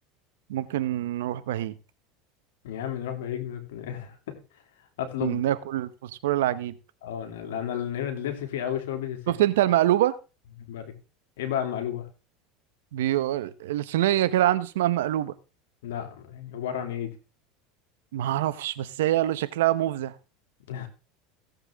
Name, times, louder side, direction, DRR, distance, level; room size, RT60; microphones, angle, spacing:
voice 1, 0.5-1.7 5.2-6.7 9.3-10.2 12.9-15.3 18.1-20.1, right 13 dB, 85° right, 14 dB, 1.0 m, -25 dB
voice 2, 2.6-4.4 5.0-5.4 7.0-9.2 10.7-10.9 11.4-12.1 15.8-17.1 20.7-20.9, left 10 dB, 85° left, 6 dB, 2.8 m, -32 dB
16.0 x 8.1 x 3.7 m, 0.32 s
supercardioid pair, 120°, 0 cm